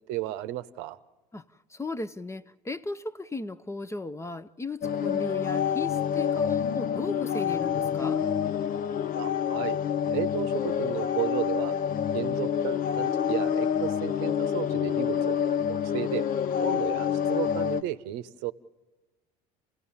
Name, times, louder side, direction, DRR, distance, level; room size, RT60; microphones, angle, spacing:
voice 1, 0.1-1.0 9.1-9.8 10.1-11.7 12.1-15.4 15.7-16.2 16.6-18.5, right 15 dB, 65° right, 0.8 m, -33 dB
voice 2, 1.7-8.2, left 2 dB, 15° left, 0.7 m, -36 dB
sound 1, 4.8-17.8, left 8 dB, 45° left, 0.8 m, -27 dB
28.0 x 16.5 x 7.2 m
hypercardioid pair, 70°, 20 cm